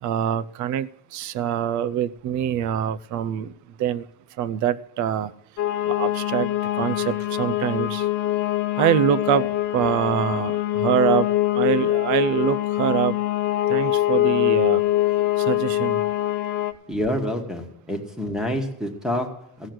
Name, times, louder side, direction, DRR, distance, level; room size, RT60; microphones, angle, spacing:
voice 1, 0.0-3.5 3.8-4.1 4.4-5.3 5.8-8.1 8.8-9.5 9.7-13.2 13.7-14.8 15.4-16.0, right 9 dB, 45° right, 0.6 m, -24 dB
sound 1, 5.6-16.7, left 14 dB, 45° left, 0.9 m, -23 dB
voice 2, 16.9-19.7, equal, ahead, 1.4 m, -28 dB
15.5 x 6.3 x 7.7 m
cardioid pair, 170°, 41 cm